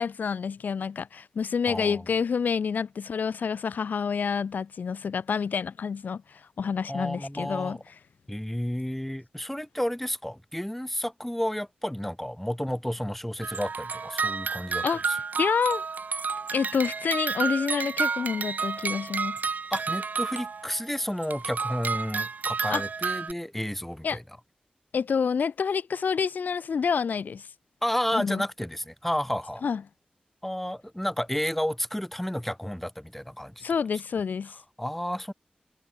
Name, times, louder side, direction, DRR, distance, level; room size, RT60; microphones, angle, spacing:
voice 1, 0.0-7.8 14.8-15.0 15.4-15.8 16.5-19.4 22.7-22.8 24.0-24.2 24.9-27.5 28.1-28.4 29.6-29.8 33.6-34.5, left 6 dB, 90° left, 0.9 m, -28 dB
voice 2, 1.7-2.0 6.9-7.8 8.3-15.2 19.7-24.2 27.8-29.6 30.4-33.6 34.8-35.3, equal, 5° left, 4.6 m, -31 dB
sound 1, 13.4-20.8 21.2-23.3, right 5 dB, 75° right, 2.3 m, -31 dB
cardioid pair, 60°, 3 cm